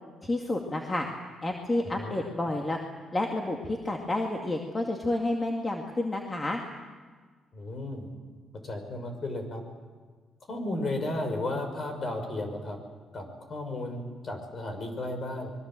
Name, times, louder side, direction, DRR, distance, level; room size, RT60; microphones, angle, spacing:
voice 1, 0.2-1.1 1.4-2.8 3.1-6.6, left 2 dB, 25° left, 2 dB, 2.3 m, -30 dB
voice 2, 7.5-8.1 8.6-9.6 10.5-12.8 13.1-15.5, left 2 dB, 45° left, 5 dB, 6.0 m, -34 dB
25.0 x 22.5 x 7.7 m, 1.5 s
cardioid pair, 90°, 0 cm